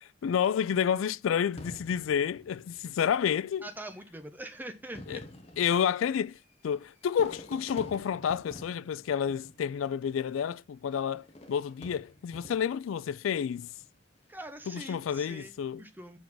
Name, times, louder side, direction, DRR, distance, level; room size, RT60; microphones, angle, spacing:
voice 1, 0.0-3.7 5.1-5.2 5.6-6.4 6.6-13.7 14.7-15.8, left 8 dB, 90° left, 0.3 m, -30 dB
Fireworks, 1.6-3.2 4.0-4.1 4.8-10.1 11.2-12.9 13.5-14.0, left 1 dB, 35° left, 1.2 m, -48 dB
voice 2, 3.6-5.2 14.3-16.2, right 1 dB, 10° right, 0.9 m, -43 dB
7.4 x 4.5 x 6.1 m
head